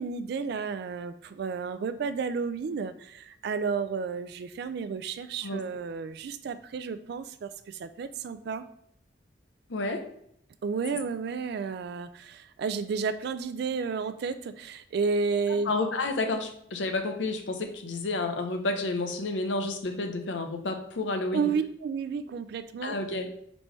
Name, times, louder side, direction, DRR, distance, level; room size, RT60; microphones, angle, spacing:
voice 1, 0.0-8.6 10.6-15.7 21.3-23.0, right 5 dB, 60° right, 11 dB, 0.3 m, -32 dB
voice 2, 9.7-10.0 15.6-21.5 22.8-23.3, left 2 dB, 75° left, 5 dB, 0.6 m, -30 dB
4.1 x 3.3 x 3.0 m, 0.69 s
head